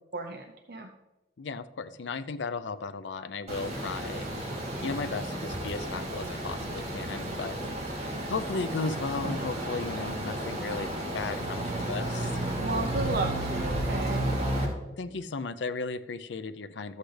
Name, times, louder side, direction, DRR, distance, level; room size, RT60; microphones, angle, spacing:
voice 1, 0.1-0.9 12.6-14.3, right 2 dB, 60° right, 3 dB, 0.7 m, -33 dB
voice 2, 1.4-4.3 4.8-7.6 8.3-12.7 15.0-17.0, left 4 dB, 85° left, 12 dB, 0.5 m, -35 dB
sound 1, 3.5-14.7, right 1 dB, 35° right, 2.6 m, -32 dB
13.0 x 8.2 x 3.3 m, 1.1 s
head